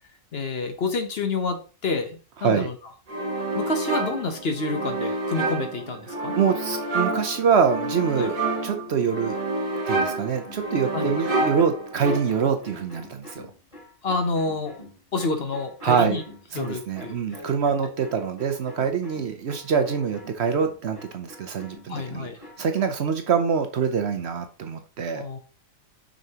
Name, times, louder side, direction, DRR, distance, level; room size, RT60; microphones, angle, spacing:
voice 1, 0.3-2.7 3.5-6.3 8.2-8.3 10.9-11.2 14.0-14.8 15.1-16.2 16.5-17.2 17.8-17.9 21.9-22.4 25.1-25.4, left 3 dB, 50° left, 6 dB, 1.0 m, -28 dB
sound 1, 3.1-12.6, right 2 dB, 45° right, 1.3 m, -28 dB
voice 2, 6.1-9.4 9.9-13.5 15.8-16.2 16.5-22.3 22.6-25.2, right 6 dB, 60° right, 6 dB, 0.9 m, -25 dB
sound 2, 8.9-23.0, left 1 dB, 25° left, 3.4 m, -45 dB
6.3 x 5.4 x 2.8 m, 0.36 s
omnidirectional pair, 1.4 m